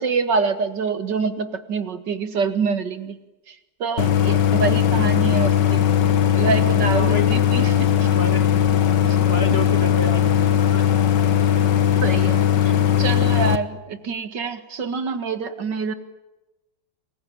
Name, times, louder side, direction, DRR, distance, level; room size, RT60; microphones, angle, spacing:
voice 1, 0.0-3.2 3.5-3.6 3.8-5.9 6.4-8.1 9.0-9.2 9.5-9.6 12.0-15.9, right 5 dB, 80° right, 10 dB, 2.5 m, -26 dB
Idling, 4.0-13.6, left 11 dB, 85° left, 1.9 m, -18 dB
voice 2, 6.9-7.5 8.1-8.5 9.2-10.8, left 2 dB, 35° left, 9 dB, 2.0 m, -30 dB
28.5 x 21.5 x 8.8 m, 1.0 s
omnidirectional pair, 1.9 m